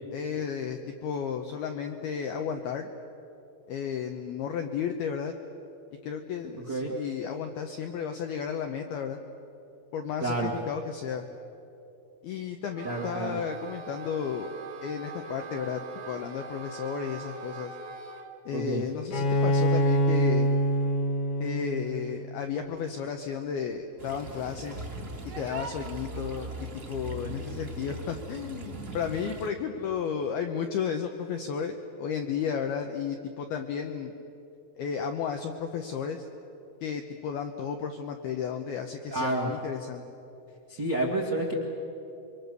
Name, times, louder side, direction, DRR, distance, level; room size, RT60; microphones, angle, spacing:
voice 1, 0.1-2.9 3.7-5.3 6.0-9.2 9.9-11.3 12.2-14.5 14.8-17.8 18.5-20.5 21.4-24.9 25.4-34.1 34.8-36.3 36.8-40.0, left 7 dB, 90° left, 5 dB, 2.2 m, -33 dB
voice 2, 10.2-10.5 12.8-13.4 18.5-18.8 39.1-39.5 40.7-41.5, right 2 dB, 85° right, -1 dB, 0.9 m, -29 dB
Wind instrument woodwind instrument, 12.7-18.3, right 4 dB, 60° right, 2.1 m, -42 dB
Bowed string instrument, 19.1-22.7, equal, 75° left, 1.3 m, -26 dB
sound 1, 24.0-29.5, right 2 dB, 30° right, 1.4 m, -39 dB
27.0 x 24.0 x 6.8 m, 2.9 s
omnidirectional pair, 5.7 m